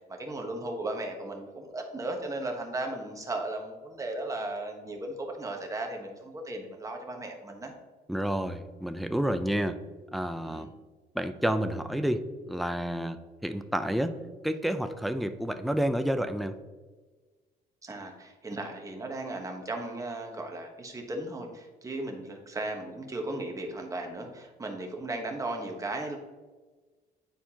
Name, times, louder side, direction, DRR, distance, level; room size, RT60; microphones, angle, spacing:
voice 1, 0.2-7.7 10.5-10.7 17.8-26.2, right 2 dB, 20° right, 2 dB, 1.1 m, -36 dB
voice 2, 8.1-9.8 10.1-10.7 11.1-13.2 13.4-14.2 14.4-16.6, equal, ahead, 8 dB, 0.4 m, -29 dB
9.3 x 4.3 x 2.8 m, 1.3 s
cardioid pair, 120°, 17 cm